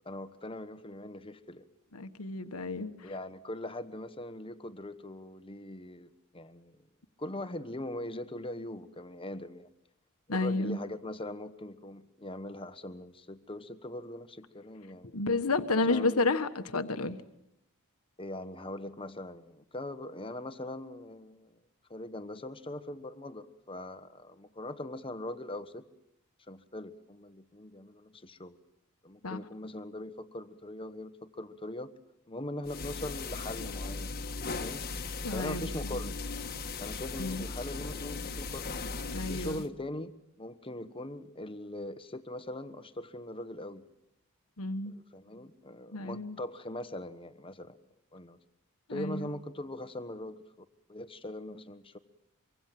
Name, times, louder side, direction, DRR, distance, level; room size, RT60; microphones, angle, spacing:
voice 1, 0.0-1.6 3.0-6.8 7.2-9.7 10.3-15.2 15.7-16.3 18.2-21.5 21.9-25.8 26.5-28.6 29.0-31.9 32.3-34.8 35.3-36.2 36.8-38.7 39.3-40.1 40.4-43.8 44.9-47.8 48.1-48.4 48.9-50.4 50.9-52.0, left 1 dB, 25° left, 11 dB, 1.3 m, -41 dB
voice 2, 1.9-3.1 10.3-10.8 15.1-17.2 29.2-29.4 35.2-35.7 37.2-37.4 39.1-39.6 44.6-44.9 45.9-46.3 48.9-49.3, left 3 dB, 75° left, 9 dB, 1.5 m, -31 dB
sound 1, 32.6-39.7, left 3 dB, 45° left, 1.5 m, -38 dB
24.5 x 24.5 x 7.7 m, 0.80 s
head